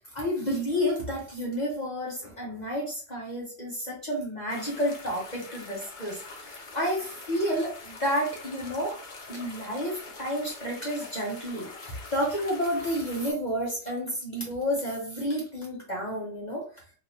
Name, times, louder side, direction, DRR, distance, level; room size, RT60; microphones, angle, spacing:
voice 1, 0.1-8.9 9.3-16.6, equal, 35° left, -3 dB, 0.7 m, -30 dB
sound 1, 4.5-13.3, left 3 dB, 65° left, 0.4 m, -44 dB
3.7 x 2.9 x 2.7 m, 0.40 s
omnidirectional pair, 1.9 m